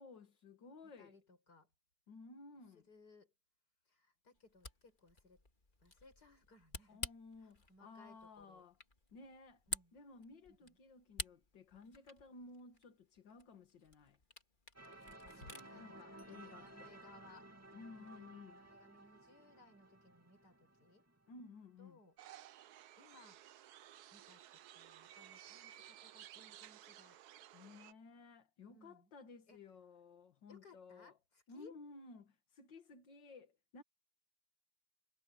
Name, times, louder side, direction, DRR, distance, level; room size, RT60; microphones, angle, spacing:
voice 1, 0.0-1.2 2.1-2.9 6.9-8.7 9.1-9.6 9.9-14.2 15.8-16.9 17.7-18.6 21.3-22.0 27.5-31.1 31.5-33.8, left 3 dB, 75° left, 2.5 m, -56 dB
voice 2, 0.8-1.7 2.7-3.3 3.9-5.4 5.8-7.0 7.4-8.7 9.7-10.0 10.5-10.8 15.3-16.0 16.3-17.5 18.5-21.1 21.8-22.2 23.0-23.4 24.1-27.2 28.7-29.1 29.5-29.6 30.5-31.8, left 3 dB, 60° left, 6.3 m, -63 dB
Camera, 4.3-15.7, left 3 dB, 25° left, 2.2 m, -51 dB
sound 1, 14.8-21.5, right 2 dB, 10° right, 2.3 m, -57 dB
sound 2, 22.2-27.9, right 12 dB, 65° right, 1.1 m, -57 dB
omnidirectional pair, 2.0 m